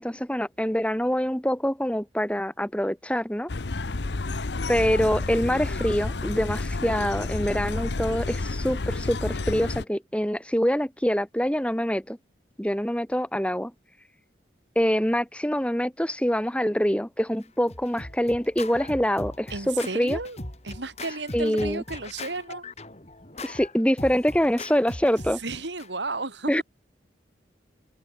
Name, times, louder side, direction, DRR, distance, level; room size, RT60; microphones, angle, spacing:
voice 1, 0.0-3.5 4.7-12.2 12.6-13.7 14.8-20.2 21.3-21.8 23.4-25.4 26.5-26.6, equal, 5° left, 2.1 m, -25 dB
sound 1, 3.5-9.8, left 3 dB, 70° left, 0.9 m, -30 dB
Scratching (performance technique), 17.4-25.9, left 2 dB, 35° left, 3.9 m, -40 dB
voice 2, 19.5-20.4 20.6-22.6 25.3-26.5, right 3 dB, 75° right, 3.9 m, -33 dB
open air
head